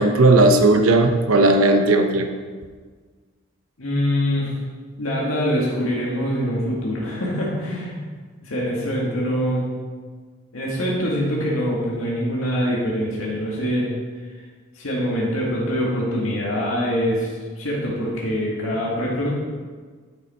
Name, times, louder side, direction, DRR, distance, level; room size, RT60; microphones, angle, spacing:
voice 1, 0.0-2.3, right 2 dB, 80° right, 6 dB, 0.7 m, -16 dB
voice 2, 3.8-4.5 5.0-8.0 8.4-9.7 10.5-13.9 14.8-17.3 17.6-19.3, equal, 75° left, -5 dB, 1.9 m, -24 dB
10.5 x 5.9 x 4.3 m, 1.5 s
head